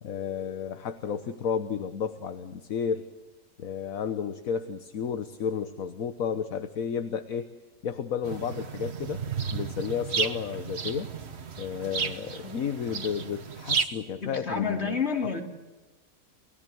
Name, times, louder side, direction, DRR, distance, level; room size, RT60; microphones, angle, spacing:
voice 1, 0.0-3.0 3.6-7.5 7.8-9.2 9.5-11.1 11.6-15.0, left 7 dB, 70° left, 10 dB, 1.5 m, -32 dB
sound 1, 8.2-13.9, right 6 dB, 50° right, 1.4 m, -33 dB
voice 2, 14.2-15.4, left 5 dB, 45° left, 3 dB, 3.5 m, -29 dB
29.0 x 17.5 x 7.8 m, 1.2 s
omnidirectional pair, 1.6 m